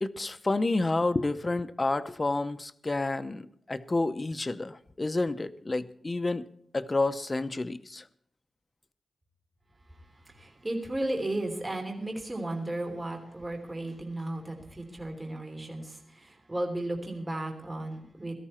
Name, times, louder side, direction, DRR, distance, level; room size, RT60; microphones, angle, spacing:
voice 1, 0.0-6.4 6.7-8.0, left 2 dB, 25° left, 11 dB, 0.8 m, -29 dB
voice 2, 9.7-18.3, right 1 dB, 20° right, 2 dB, 3.2 m, -35 dB
17.5 x 13.5 x 4.3 m, 0.67 s
wide cardioid pair, 110°, 0 cm